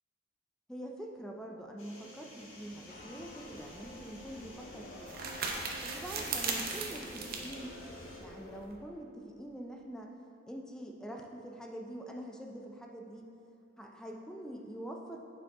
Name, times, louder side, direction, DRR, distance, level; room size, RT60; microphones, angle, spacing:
voice 1, 0.7-5.2 5.8-7.8 8.2-10.2 10.5-13.3 13.8-15.2, right 1 dB, 5° left, 1 dB, 0.4 m, -45 dB
sound 1, 1.8-8.2, equal, 75° left, 1.5 m, -51 dB
sound 2, 2.9-8.6, left 1 dB, 45° left, 0.6 m, -51 dB
sound 3, 3.6-8.8, right 4 dB, 45° right, 0.7 m, -39 dB
8.8 x 4.6 x 3.7 m, 2.6 s
head